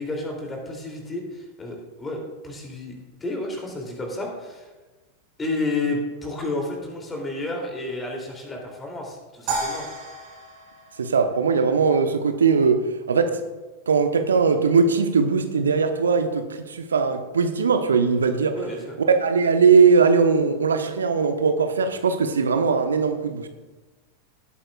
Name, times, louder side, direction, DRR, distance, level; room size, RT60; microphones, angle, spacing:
voice 1, 0.0-4.7 5.4-9.8 18.5-18.9, left 2 dB, 15° left, 1 dB, 2.9 m, -31 dB
sound 1, 9.5-11.9, right 3 dB, 45° right, 3.9 m, -32 dB
voice 2, 11.0-12.8 13.1-13.3 13.9-18.5 19.2-23.5, right 5 dB, 70° right, 7 dB, 1.0 m, -20 dB
17.5 x 8.9 x 2.4 m, 1.2 s
figure-of-eight pair, 90°, 0 cm